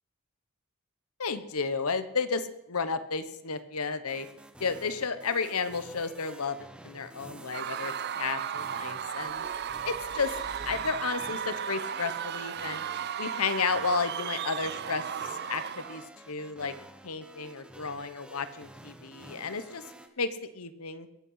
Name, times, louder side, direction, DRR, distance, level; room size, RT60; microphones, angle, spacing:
voice 1, 1.2-4.3 4.6-6.6 6.8-9.5 9.8-10.3 10.6-12.9 13.2-16.7 17.0-19.8 20.2-21.1, left 5 dB, 90° left, 12 dB, 1.2 m, -32 dB
sound 1, 4.1-20.1, right 1 dB, 5° right, 1.1 m, -50 dB
Screaming / Cheering / Crowd, 7.5-16.1, right 8 dB, 50° right, 0.5 m, -35 dB
sound 2, 9.3-11.6, left 1 dB, 15° left, 1.8 m, -51 dB
22.0 x 8.7 x 5.7 m, 0.89 s
head